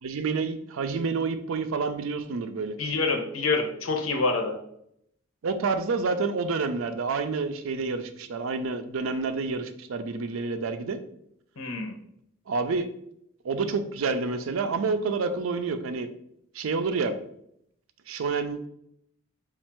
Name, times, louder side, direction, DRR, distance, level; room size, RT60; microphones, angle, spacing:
voice 1, 0.0-2.7 5.4-11.0 12.5-12.9 13.4-16.1 16.5-17.2 18.1-18.7, right 4 dB, 75° right, 9 dB, 0.4 m, -28 dB
voice 2, 2.8-4.5 11.6-11.9, left 3 dB, 85° left, 4 dB, 0.8 m, -26 dB
4.4 x 2.4 x 4.4 m, 0.74 s
head